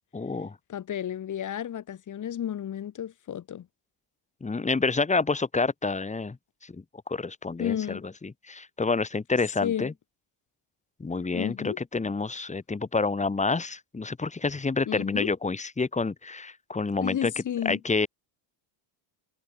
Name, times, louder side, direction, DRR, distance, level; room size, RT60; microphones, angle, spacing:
voice 1, 0.1-0.5 4.4-6.4 6.7-8.0 8.5-9.9 11.0-17.3 17.7-18.1, left 4 dB, 15° left, 7.2 m, -28 dB
voice 2, 0.7-3.7 7.6-8.0 9.6-9.9 11.3-11.8 14.9-15.3 17.0-17.8, left 10 dB, 35° left, 5.9 m, -32 dB
cardioid pair, 155°, 49 cm